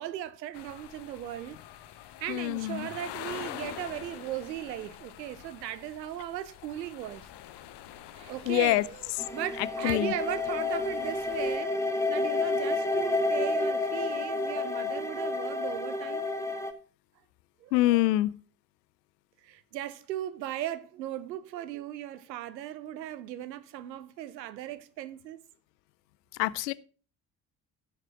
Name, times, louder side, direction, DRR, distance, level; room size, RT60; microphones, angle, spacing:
voice 1, 0.0-1.6 2.2-7.3 8.1-11.7 12.1-16.3 17.6-18.1 19.4-25.4, right 12 dB, 85° right, 0.7 m, -37 dB
sound 1, 0.5-11.6, left 12 dB, 55° left, 1.0 m, -46 dB
voice 2, 2.3-2.9 8.5-8.8 9.8-10.1 17.7-18.4 26.4-26.7, left 17 dB, 75° left, 0.6 m, -25 dB
sound 2, 9.2-16.7, left 2 dB, 5° left, 1.5 m, -30 dB
15.5 x 6.5 x 3.6 m
figure-of-eight pair, 45°, 49 cm